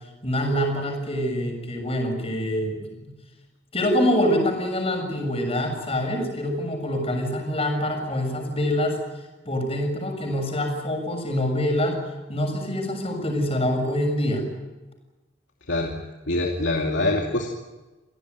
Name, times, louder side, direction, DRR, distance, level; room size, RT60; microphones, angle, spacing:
voice 1, 0.2-3.1 3.7-9.0 9.5-12.0 12.3-14.5, equal, 35° left, 3 dB, 6.8 m, -25 dB
voice 2, 16.3-17.5, left 2 dB, 80° left, 1 dB, 2.6 m, -24 dB
27.0 x 17.5 x 9.5 m, 1.1 s
head